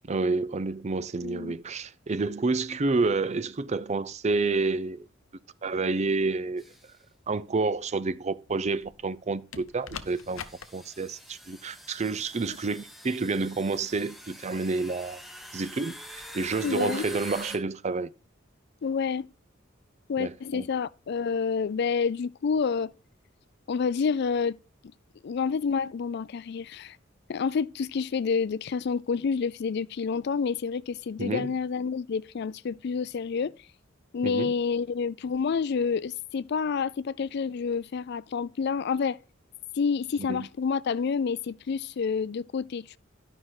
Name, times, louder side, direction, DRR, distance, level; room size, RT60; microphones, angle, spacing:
voice 1, 0.1-5.1 5.6-6.6 7.3-10.4 10.7-15.2 15.5-18.1 20.2-20.7 31.2-31.5 34.2-34.5 40.2-40.5, right 3 dB, 35° right, 0.5 m, -29 dB
voice 2, 1.2-1.6 16.6-17.0 18.8-19.3 20.1-22.9 23.7-24.6 25.2-27.0 27.3-33.5 34.1-39.2 39.8-43.0, left 5 dB, 55° left, 0.4 m, -28 dB
sound 1, 6.6-6.9 7.9-8.0 9.1-9.2 10.0-17.6, equal, ahead, 1.5 m, -45 dB
sound 2, 8.5-9.1 9.5-10.7 12.4-12.7, left 7 dB, 90° left, 0.8 m, -43 dB
11.0 x 5.8 x 4.7 m
head